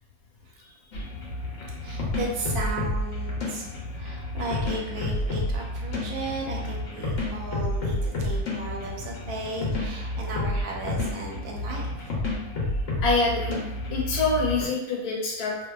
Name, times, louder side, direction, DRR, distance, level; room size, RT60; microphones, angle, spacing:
sound 1, 0.9-14.6, left 1 dB, 65° left, 0.9 m, -30 dB
voice 1, 1.8-12.4, right 2 dB, 85° right, -1 dB, 1.1 m, -35 dB
voice 2, 13.0-13.5 13.9-15.7, left 3 dB, 80° left, -2 dB, 1.2 m, -25 dB
2.7 x 2.2 x 2.2 m, 0.95 s
omnidirectional pair, 1.6 m